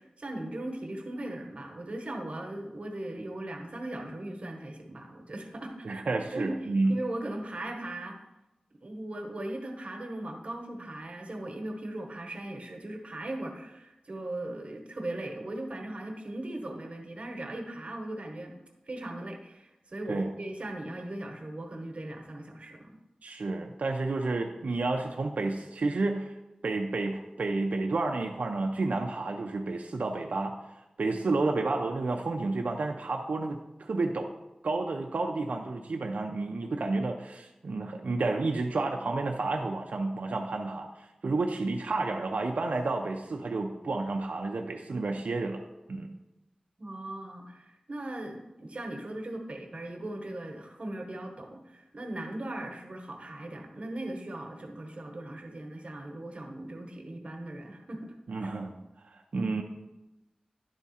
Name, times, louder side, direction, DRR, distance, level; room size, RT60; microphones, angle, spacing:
voice 1, 0.0-6.0 6.3-8.2 8.8-18.6 18.9-23.0 46.8-58.1 58.4-58.5, right 1 dB, 55° right, 3 dB, 1.1 m, -38 dB
voice 2, 5.8-7.0 20.1-20.3 23.2-26.3 26.6-30.5 31.0-34.3 34.6-40.9 41.2-45.6 45.9-46.1 58.3-58.7 59.1-59.6, right 3 dB, 80° right, 2 dB, 0.5 m, -30 dB
10.5 x 3.6 x 4.2 m, 0.98 s
wide cardioid pair, 85°, 2 cm